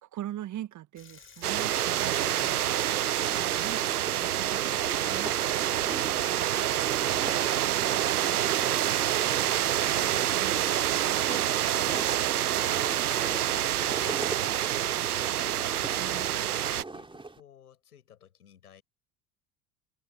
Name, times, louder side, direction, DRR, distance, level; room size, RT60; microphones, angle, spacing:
voice 1, 0.0-2.6 3.1-5.7 10.3-10.5 16.0-16.4, right 13 dB, 40° right, 1.9 m, -42 dB
sound 1, 1.0-6.1, left 6 dB, 25° left, 8.0 m, -55 dB
sound 2, 1.4-16.8, right 12 dB, 75° right, 1.0 m, -27 dB
sound 3, 3.2-17.4, right 3 dB, 10° right, 3.8 m, -41 dB
voice 2, 6.2-16.0 16.3-18.8, left 9 dB, 75° left, 7.0 m, -55 dB
figure-of-eight pair, 65°, 46 cm